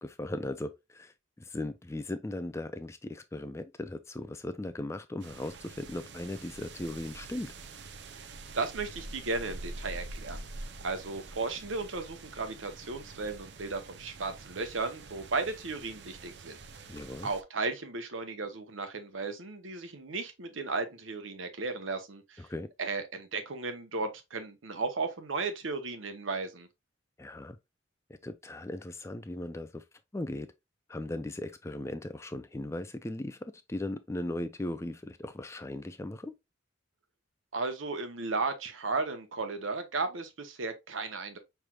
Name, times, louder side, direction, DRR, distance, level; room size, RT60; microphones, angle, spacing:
voice 1, 0.0-7.5 16.9-17.3 22.4-22.7 27.2-27.6 28.1-29.8 30.1-30.5 30.9-36.3, left 1 dB, 15° left, 0.3 m, -38 dB
sound 1, 5.2-17.4, right 2 dB, 60° right, 0.6 m, -46 dB
voice 2, 8.5-10.5 10.8-16.6 17.2-22.5 22.8-26.7 37.5-41.4, right 3 dB, 80° right, 1.0 m, -35 dB
5.9 x 3.4 x 2.3 m
head